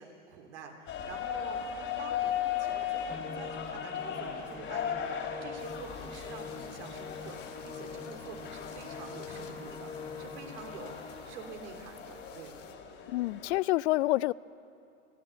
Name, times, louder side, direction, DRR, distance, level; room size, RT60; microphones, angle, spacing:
voice 1, 0.0-1.6 2.0-9.9 10.2-12.5, right 6 dB, 65° right, 3 dB, 3.2 m, -47 dB
sound 1, 0.9-13.6, left 9 dB, 35° left, 3.0 m, -38 dB
Musical instrument, 3.1-11.6, left 4 dB, 15° left, 2.6 m, -45 dB
sound 2, 5.6-12.7, left 7 dB, 80° left, 2.0 m, -55 dB
voice 2, 13.1-14.3, left 18 dB, 60° left, 22 dB, 0.5 m, -27 dB
29.5 x 9.9 x 9.7 m, 2.7 s
hypercardioid pair, 120°, 37 cm